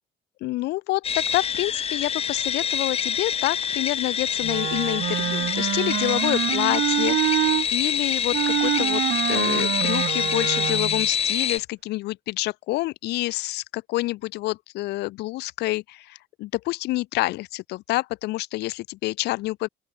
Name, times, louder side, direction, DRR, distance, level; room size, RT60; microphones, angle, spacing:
voice 1, 0.4-7.5 7.7-9.0 9.3-19.7, left 19 dB, 80° left, 0.7 m, -28 dB
sound 1, 1.0-11.6, left 8 dB, 35° left, 0.8 m, -26 dB
Wind instrument woodwind instrument, 4.4-7.7 8.3-11.1, right 15 dB, 70° right, 1.5 m, -26 dB
open air
cardioid pair, 110°, 17 cm